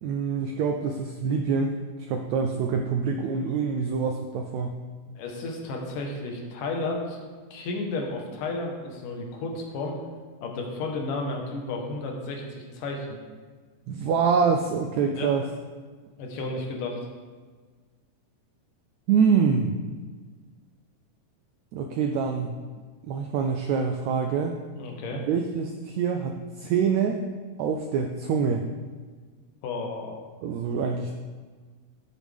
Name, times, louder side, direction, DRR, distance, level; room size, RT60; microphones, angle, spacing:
voice 1, 0.0-1.7 2.1-4.7 13.9-15.4 19.1-19.7 21.7-22.6 23.0-24.6 25.1-27.2 27.6-28.6 30.4-31.1, right 6 dB, 80° right, 4 dB, 1.6 m, -25 dB
voice 2, 5.2-7.2 7.5-10.0 10.4-13.2 15.0-15.3 16.2-17.0 24.8-25.2 29.6-30.2, left 3 dB, 75° left, 1 dB, 2.8 m, -32 dB
11.0 x 8.4 x 3.5 m, 1.5 s
omnidirectional pair, 3.8 m